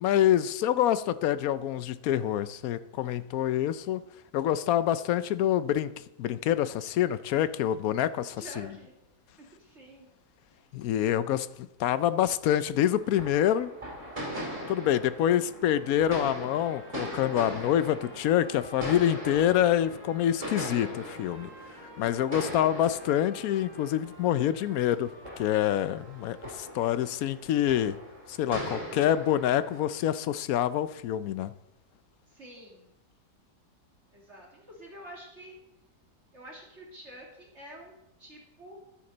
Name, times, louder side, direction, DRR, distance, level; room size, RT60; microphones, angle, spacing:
voice 1, 0.0-4.0 4.3-5.9 6.2-8.4 10.7-13.7 14.7-21.5 22.0-25.1 25.4-28.0 28.3-31.5, left 11 dB, 70° left, 0.9 m, -26 dB
voice 2, 8.4-8.9 9.4-10.1 10.5-10.7 32.3-32.9 34.1-35.5 36.3-37.9 38.2-38.8, right 1 dB, 40° right, 2.4 m, -48 dB
sound 1, 13.0-29.9, equal, 20° right, 2.9 m, -40 dB
sound 2, 15.4-27.1, equal, 60° right, 3.5 m, -53 dB
13.0 x 9.8 x 3.9 m
omnidirectional pair, 1.8 m